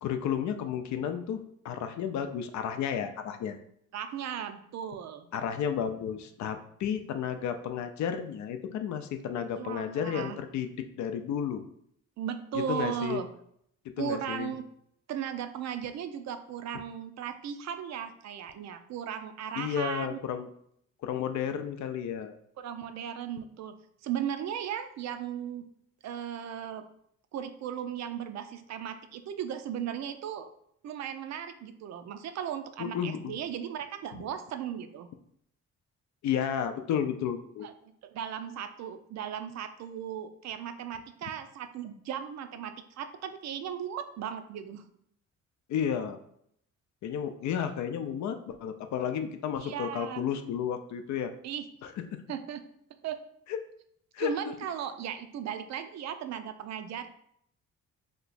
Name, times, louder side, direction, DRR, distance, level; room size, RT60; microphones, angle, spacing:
voice 1, 0.0-3.6 5.3-11.6 12.5-13.2 14.0-14.5 19.6-20.5 21.0-22.3 32.8-33.4 36.2-37.7 45.7-46.2 47.0-51.3 51.8-52.2 53.5-53.6 54.1-54.3, left 8 dB, 70° left, 8 dB, 0.5 m, -32 dB
voice 2, 3.9-5.3 9.6-10.4 12.2-13.3 14.0-14.7 15.1-20.2 22.6-23.8 24.0-25.7 26.0-26.8 27.3-30.5 30.8-35.1 37.6-37.7 38.0-44.8 49.6-50.3 51.4-51.7 52.3-52.6 53.0-53.2 54.2-57.1, right 9 dB, 60° right, 9 dB, 0.5 m, -36 dB
2.9 x 2.3 x 4.1 m, 0.71 s
cardioid pair, 90°, 30 cm